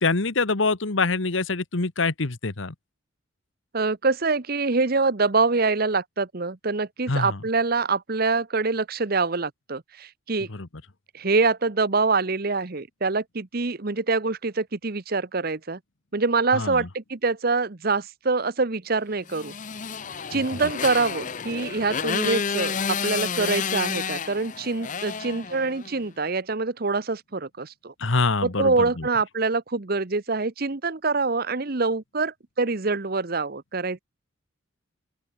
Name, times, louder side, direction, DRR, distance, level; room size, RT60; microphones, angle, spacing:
voice 1, 0.0-2.7 7.1-7.4 10.5-10.7 16.5-16.9 20.3-20.4 28.0-29.1, left 3 dB, 70° left, 1.4 m, -25 dB
voice 2, 3.7-10.5 11.1-15.8 16.1-19.5 20.3-27.9 28.4-34.0, right 3 dB, 50° right, 1.0 m, -25 dB
Motorcycle, 19.3-26.0, left 6 dB, 40° left, 0.8 m, -30 dB
open air
head